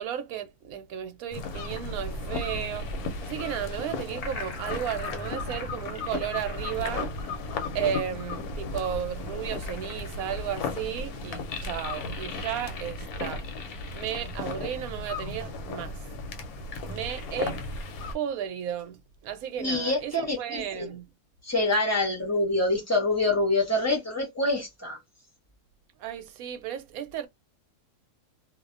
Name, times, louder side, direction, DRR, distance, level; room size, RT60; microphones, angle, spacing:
voice 1, 0.0-2.9 3.2-7.1 7.7-13.4 13.9-16.0 16.9-17.6 18.1-21.1 26.0-27.3, right 9 dB, 75° right, 1.0 m, -34 dB
sound 1, 1.3-18.2, left 3 dB, 80° left, 1.1 m, -35 dB
voice 2, 19.6-20.9 21.4-25.0, left 2 dB, 25° left, 0.4 m, -26 dB
2.6 x 2.1 x 2.4 m
omnidirectional pair, 1.6 m